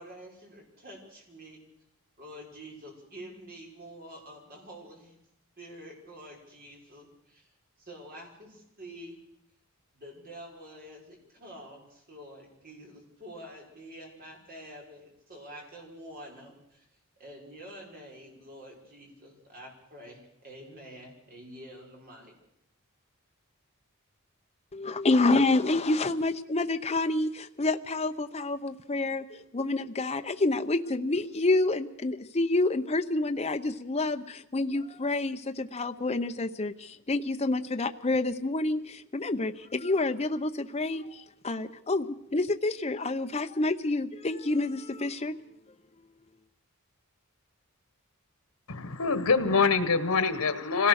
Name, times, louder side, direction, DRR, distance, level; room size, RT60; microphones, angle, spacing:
voice 1, 0.0-1.6 2.2-5.2 5.6-7.5 7.8-9.2 9.9-16.9 17.2-22.3, equal, 45° right, 0 dB, 5.8 m, -47 dB
voice 2, 24.7-45.4, left 2 dB, 30° left, 7 dB, 0.8 m, -28 dB
voice 3, 48.7-50.9, left 5 dB, 90° left, 12 dB, 1.4 m, -25 dB
25.5 x 18.0 x 6.5 m, 0.75 s
head